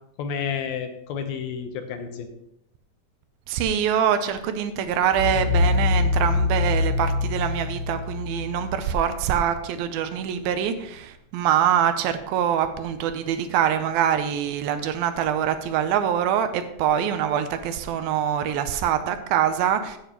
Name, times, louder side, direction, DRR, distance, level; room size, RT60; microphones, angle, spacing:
voice 1, 0.2-2.3, left 7 dB, 75° left, 6 dB, 2.8 m, -30 dB
voice 2, 3.5-20.0, right 9 dB, 80° right, 9 dB, 2.5 m, -24 dB
sound 1, 5.1-10.0, left 3 dB, 20° left, 2.7 m, -24 dB
16.0 x 8.7 x 3.0 m, 0.78 s
omnidirectional pair, 4.4 m